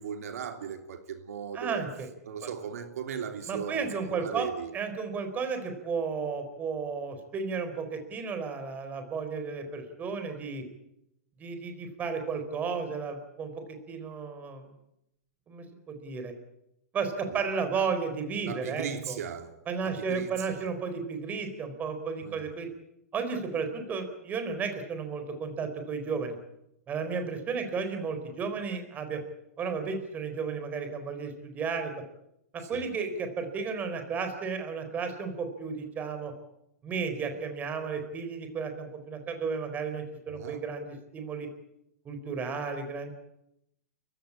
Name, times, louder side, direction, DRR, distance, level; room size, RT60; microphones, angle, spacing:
voice 1, 0.0-1.9 2.2-4.7 17.3-17.4 18.4-19.5 19.8-20.6 22.2-22.5 32.7-32.8 40.3-40.7, right 7 dB, 80° right, 3.1 m, -37 dB
voice 2, 1.5-2.1 3.5-10.6 11.4-13.5 13.9-14.7 15.5-16.3 16.9-19.2 19.7-22.7 23.1-26.3 26.9-29.2 29.6-31.9 32.5-36.3 36.8-41.5 42.0-43.1, right 5 dB, 20° right, 4.2 m, -33 dB
30.0 x 16.0 x 8.7 m
supercardioid pair, 150°, 8 cm